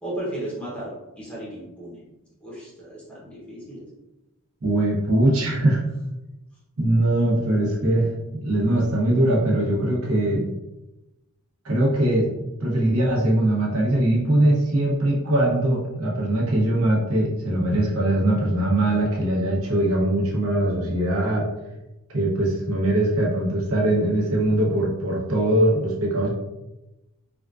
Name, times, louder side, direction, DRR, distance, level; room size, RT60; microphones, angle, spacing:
voice 1, 0.0-2.0 2.4-3.8, right 1 dB, 5° left, -7 dB, 0.8 m, -35 dB
voice 2, 4.6-5.8 6.8-10.4 11.6-12.3 12.6-21.5 22.1-26.3, right 1 dB, 75° right, -4 dB, 0.9 m, -21 dB
3.5 x 2.4 x 2.4 m, 0.98 s
head